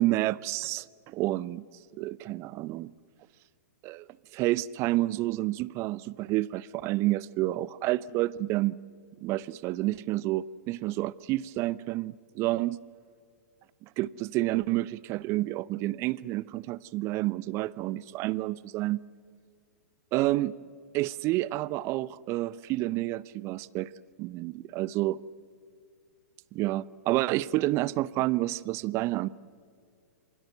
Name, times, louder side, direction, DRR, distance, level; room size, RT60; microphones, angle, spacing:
voice 1, 0.0-1.7 2.0-2.9 3.8-4.1 4.3-8.8 9.2-12.8 13.8-19.0 20.1-20.5 20.9-23.9 24.2-25.2 26.5-29.3, right 17 dB, 30° right, 0.6 m, -29 dB
28.0 x 25.0 x 6.7 m
figure-of-eight pair, 105°, 9 cm